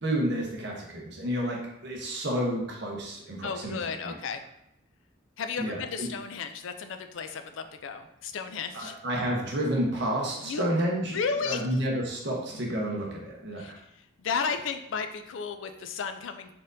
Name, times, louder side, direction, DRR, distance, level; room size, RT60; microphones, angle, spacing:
voice 1, 0.0-3.8 4.0-4.1 5.6-6.1 8.7-13.8, right 1 dB, 55° right, -1 dB, 0.8 m, -30 dB
voice 2, 3.4-4.4 5.4-9.0 10.4-10.7 11.1-11.6 13.6-13.7 14.2-16.5, left 5 dB, 65° left, 7 dB, 0.4 m, -33 dB
4.2 x 3.7 x 2.6 m, 0.79 s
head